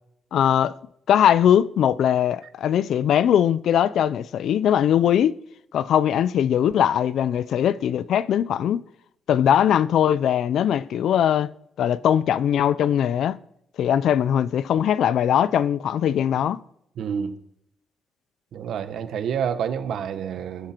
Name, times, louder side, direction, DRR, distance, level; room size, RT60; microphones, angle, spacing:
voice 1, 0.3-0.7 1.1-5.4 5.7-8.8 9.3-11.5 11.8-13.4 13.8-16.6, left 9 dB, 65° left, 0.6 m, -20 dB
voice 2, 17.0-17.4 18.5-20.7, right 8 dB, 65° right, 1.4 m, -28 dB
22.0 x 12.5 x 4.6 m
cardioid pair, 150°, 0 cm